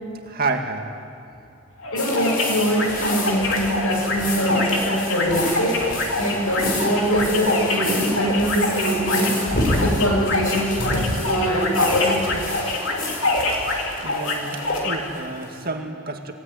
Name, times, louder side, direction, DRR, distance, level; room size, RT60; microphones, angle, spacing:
voice 1, 0.2-0.9 14.0-16.3, right 3 dB, 45° right, 3 dB, 2.2 m, -29 dB
sound 1, 1.8-15.0, left 2 dB, 60° left, 3.2 m, -26 dB
voice 2, 1.9-5.8 6.2-9.3 9.7-12.4, equal, 85° left, 1 dB, 7.1 m, -23 dB
sound 2, 2.0-15.6, left 1 dB, 40° left, 4.8 m, -29 dB
27.0 x 19.5 x 9.4 m, 2.7 s
head